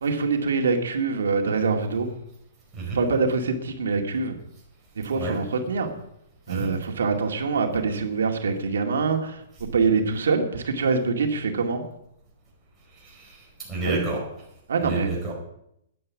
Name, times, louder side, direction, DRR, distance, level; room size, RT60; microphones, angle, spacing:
voice 1, 0.0-2.1 2.9-4.3 5.0-5.9 6.5-11.8 13.8-14.0 14.7-15.1, right 4 dB, 85° right, 3 dB, 2.2 m, -24 dB
voice 2, 13.0-13.4 13.7-14.2 14.8-15.3, right 2 dB, 10° right, -5 dB, 4.8 m, -30 dB
10.0 x 10.0 x 8.4 m, 0.78 s
hypercardioid pair, 170°, 0 cm